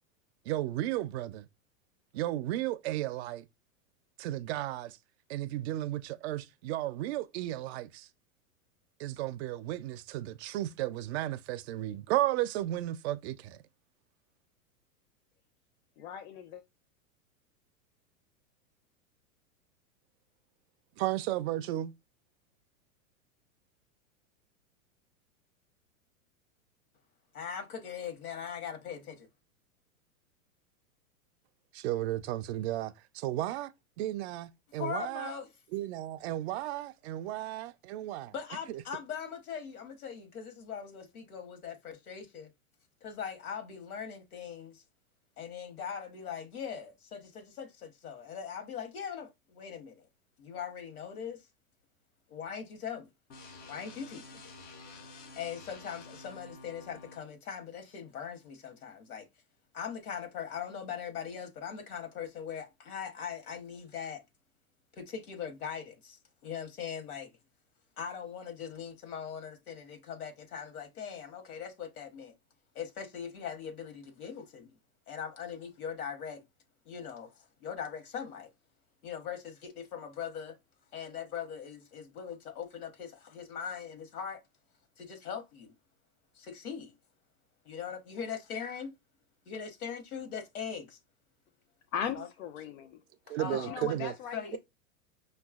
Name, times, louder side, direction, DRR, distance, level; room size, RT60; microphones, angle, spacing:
voice 1, 0.4-1.5 2.1-3.5 4.2-5.0 5.3-8.1 9.0-13.6 21.0-21.9 31.7-33.7 34.0-35.3 35.7-38.3 38.7-38.8 93.3-94.1, right 14 dB, 50° right, 0.5 m, -34 dB
voice 2, 16.0-16.6 91.9-93.0 93.3-94.6, left 8 dB, 70° left, 0.6 m, -38 dB
voice 3, 27.3-29.3 34.8-35.5 38.3-42.5 43.0-44.8 45.4-50.1 50.4-51.4 52.3-53.1 53.7-54.5 55.3-59.3 59.7-64.2 65.0-67.3 68.0-72.3 72.7-74.7 75.1-76.4 76.8-78.5 79.0-80.6 80.9-84.4 85.0-85.7 86.3-86.9 87.6-88.9 89.5-91.0 92.1-92.3 93.3-93.9 94.3-94.6, left 7 dB, 85° left, 1.0 m, -40 dB
sound 1, 53.3-57.3, left 3 dB, 25° left, 0.4 m, -50 dB
5.3 x 2.3 x 2.3 m
hypercardioid pair, 115°, 42 cm